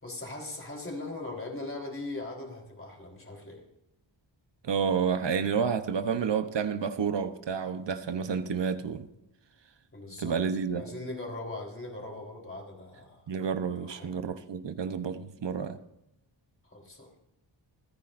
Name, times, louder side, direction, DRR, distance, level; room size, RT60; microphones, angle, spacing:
voice 1, 0.0-3.6 9.9-10.4 10.7-13.2 13.8-14.1 16.6-17.1, left 2 dB, 30° left, -1 dB, 4.0 m, -40 dB
voice 2, 4.6-9.1 10.2-10.9 13.3-15.8, right 6 dB, 70° right, 9 dB, 1.0 m, -30 dB
28.0 x 10.0 x 2.6 m, 0.86 s
wide cardioid pair, 100°, 45 cm